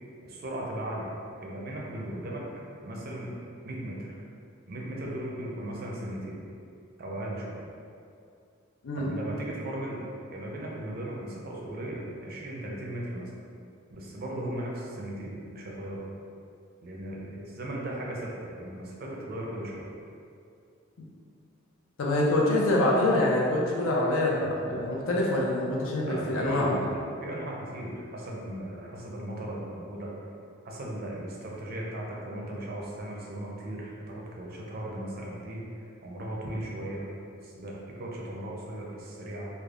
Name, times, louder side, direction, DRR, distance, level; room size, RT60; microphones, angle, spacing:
voice 1, 0.2-1.1 1.4-2.4 2.8-3.3 3.6-4.0 4.7-6.4 7.0-7.6 9.0-10.0 10.3-13.3 13.9-16.0 16.8-19.8 26.0-30.1 30.6-37.1 37.4-39.5, right 1 dB, 50° right, -3 dB, 0.5 m, -37 dB
voice 2, 22.0-26.9, left 1 dB, 85° left, -3 dB, 0.5 m, -25 dB
3.3 x 2.0 x 2.3 m, 2.4 s
head